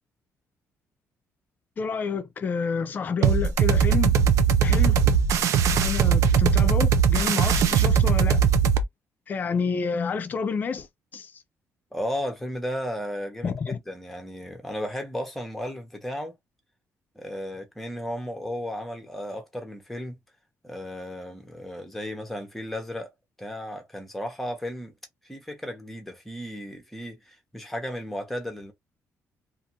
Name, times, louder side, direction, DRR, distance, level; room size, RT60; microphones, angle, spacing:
voice 1, 1.8-4.2 4.6-5.0 5.8-8.4 9.3-10.9 11.1-11.3 13.4-13.8, left 5 dB, 35° left, 0.4 m, -29 dB
sound 1, 3.2-8.8, right 7 dB, 65° right, 0.4 m, -20 dB
voice 2, 11.9-16.3 17.1-20.2 20.6-23.1 23.4-24.9 25.2-28.7, equal, 5° left, 0.8 m, -34 dB
2.5 x 2.5 x 2.8 m
cardioid pair, 160°, 6 cm